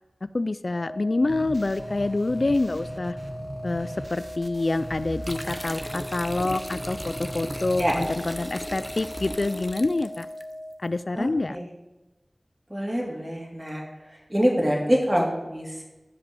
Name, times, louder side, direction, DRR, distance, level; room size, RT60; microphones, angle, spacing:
voice 1, 0.2-3.2 3.6-10.3 10.8-11.6, left 2 dB, 70° left, 14 dB, 0.3 m, -27 dB
sound 1, 0.7-10.7, left 1 dB, 55° left, 2.8 m, -39 dB
sound 2, 1.3-9.3, right 1 dB, 50° right, 1.0 m, -40 dB
sound 3, 5.2-10.4, equal, ahead, 0.6 m, -37 dB
voice 2, 11.2-11.7 12.7-13.8 14.3-15.8, equal, 20° right, -2 dB, 2.7 m, -25 dB
11.0 x 5.1 x 7.0 m, 1.0 s
wide cardioid pair, 50°, 0 cm